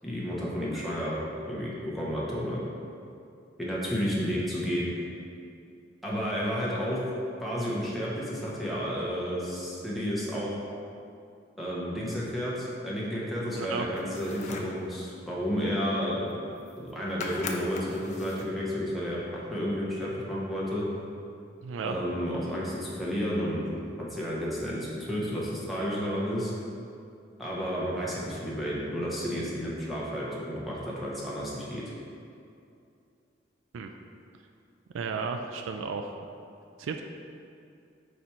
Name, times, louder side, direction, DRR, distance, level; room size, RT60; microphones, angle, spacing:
voice 1, 0.0-2.6 3.6-4.9 6.0-7.0 7.4-10.5 11.6-16.3 16.8-19.2 19.5-20.8 21.8-23.7 24.0-26.5 27.4-31.8, equal, ahead, -7 dB, 1.0 m, -31 dB
voice 2, 13.5-13.9 21.6-21.9 33.7-33.9 34.9-36.2 36.8-37.0, right 5 dB, 85° right, 5 dB, 0.3 m, -33 dB
sound 1, 14.0-14.8 16.3-16.4 16.6-16.9 17.2-18.6, left 3 dB, 35° left, 0.4 m, -40 dB
5.1 x 4.2 x 4.4 m, 2.5 s
head